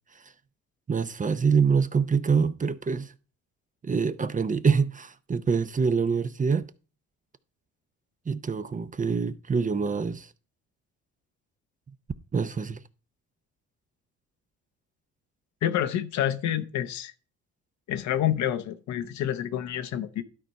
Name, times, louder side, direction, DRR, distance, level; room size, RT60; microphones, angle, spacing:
voice 1, 0.9-3.1 3.8-6.7 8.3-10.3 12.3-12.8, right 5 dB, 25° right, 0.7 m, -25 dB
voice 2, 15.6-17.1 17.9-20.2, left 11 dB, 75° left, 0.9 m, -28 dB
12.0 x 4.4 x 5.3 m
supercardioid pair, 70°, 29 cm